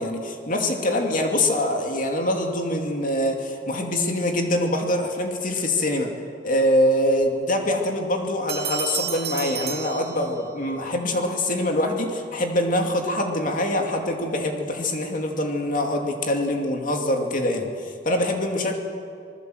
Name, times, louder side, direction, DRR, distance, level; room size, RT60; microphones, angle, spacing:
voice 1, 0.0-6.1 6.4-18.7, left 1 dB, 50° left, 2 dB, 2.6 m, -24 dB
sound 1, 8.5-10.7, right 8 dB, 60° right, 2.4 m, -32 dB
27.0 x 20.5 x 7.9 m, 2.4 s
head